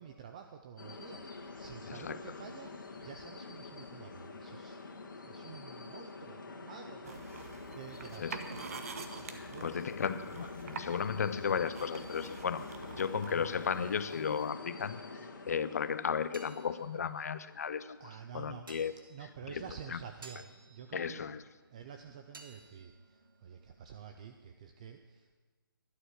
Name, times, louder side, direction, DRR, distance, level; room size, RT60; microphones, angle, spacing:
voice 1, 0.0-4.8 5.1-8.6 9.3-9.8 18.0-18.7 19.1-21.3 21.7-25.4, right 7 dB, 20° right, 6 dB, 0.4 m, -50 dB
sound 1, 0.8-17.6, left 3 dB, 65° left, 1.9 m, -47 dB
voice 2, 1.9-2.2 8.2-8.4 9.3-18.0 18.3-18.9 19.5-19.6 19.9-20.0 20.9-21.4, left 7 dB, 45° left, 14 dB, 0.6 m, -35 dB
sound 2, 7.0-14.5, right 5 dB, 40° right, 1.0 m, -47 dB
sound 3, 16.0-24.5, right 4 dB, 70° right, 1.6 m, -59 dB
12.0 x 11.0 x 6.4 m, 1.3 s
hypercardioid pair, 165°, 12 cm